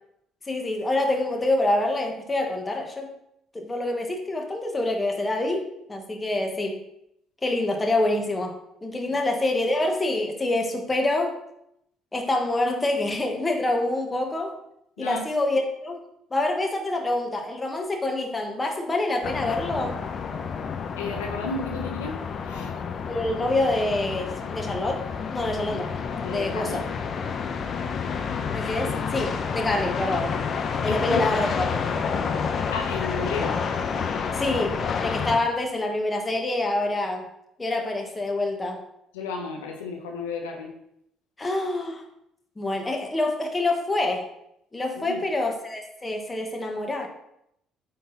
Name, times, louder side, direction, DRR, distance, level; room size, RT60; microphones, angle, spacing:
voice 1, 0.5-3.1 3.5-6.8 7.4-11.4 12.1-14.5 15.0-16.0 16.3-20.0 23.0-25.9 26.2-26.8 28.5-30.4 30.8-31.6 34.3-37.3 37.6-38.8 41.4-42.0 42.6-44.3 44.7-47.1, left 2 dB, 20° left, 2 dB, 1.6 m, -26 dB
sound 1, 19.2-35.4, left 6 dB, 50° left, 0.8 m, -29 dB
voice 2, 21.0-22.8 26.2-26.9 30.9-31.3 32.7-33.6 39.1-40.7 45.0-45.2, left 4 dB, 85° left, 1 dB, 1.0 m, -33 dB
8.7 x 3.8 x 4.1 m, 0.78 s
hypercardioid pair, 55°, 0 cm